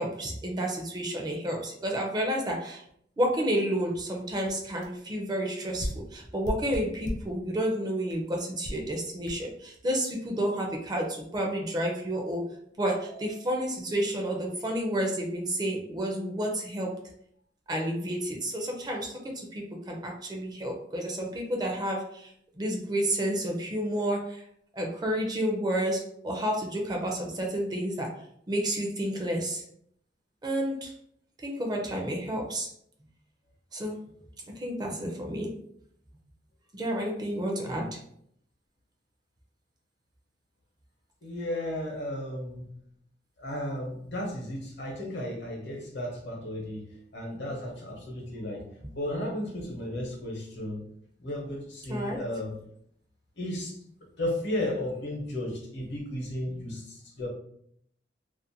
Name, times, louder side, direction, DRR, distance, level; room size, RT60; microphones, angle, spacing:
voice 1, 0.0-2.8 3.2-12.5 12.8-17.0 17.7-24.4 24.7-28.1 28.5-29.6 30.4-30.9 31.4-32.7 33.7-34.0 34.6-35.6 36.7-38.0 48.8-48.9 51.8-52.2, right 1 dB, 20° right, 0 dB, 0.4 m, -30 dB
sound 1, 4.0-4.1 4.5-4.6 4.8-5.0 5.8-7.4 8.1-8.2 8.6-8.9 9.3-9.4, equal, 45° left, 0.5 m, -36 dB
voice 2, 41.2-42.7 43.4-50.9 51.2-52.6 53.4-53.8 54.2-57.3, left 1 dB, 70° left, -1 dB, 0.8 m, -34 dB
2.4 x 2.1 x 2.7 m, 0.69 s
head